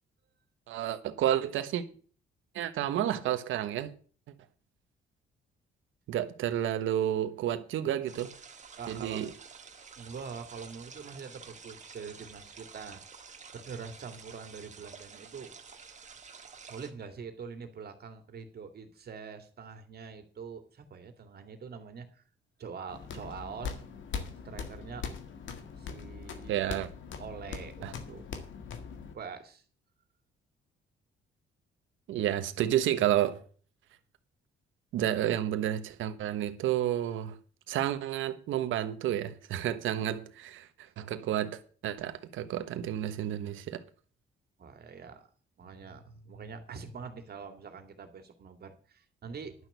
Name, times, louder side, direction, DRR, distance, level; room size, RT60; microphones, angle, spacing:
voice 1, 0.7-1.8 2.5-3.9 6.1-8.3 8.9-9.3 26.5-26.9 27.8-27.9 32.1-33.4 34.9-37.4 37.7-40.7 41.0-43.8, right 11 dB, 80° right, 1.2 m, -30 dB
sound 1, 8.1-16.9, right 5 dB, 35° right, 1.7 m, -50 dB
voice 2, 8.8-9.2 10.0-13.0 13.5-15.5 16.6-22.2 22.6-23.9 24.4-25.1 25.8-26.8 27.2-28.3 29.1-29.6 44.6-45.3 45.6-49.5, right 5 dB, 50° right, 2.4 m, -44 dB
sound 2, 22.9-29.1, left 6 dB, 75° left, 1.8 m, -41 dB
11.0 x 6.2 x 8.2 m
cardioid pair, 90°, 20 cm